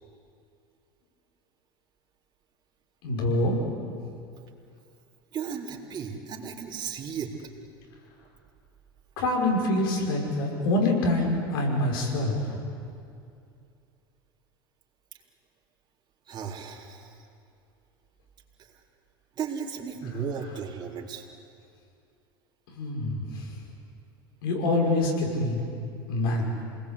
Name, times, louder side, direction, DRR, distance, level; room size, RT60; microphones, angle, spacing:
voice 1, 3.0-3.6 9.2-12.4 22.8-23.2 24.4-25.6 26.1-26.5, left 1 dB, 75° left, 0 dB, 6.0 m, -25 dB
voice 2, 5.3-7.5 16.3-17.2 19.4-21.3, right 6 dB, 40° right, -1 dB, 3.9 m, -35 dB
28.0 x 20.0 x 8.3 m, 2.5 s
hypercardioid pair, 90°, 12 cm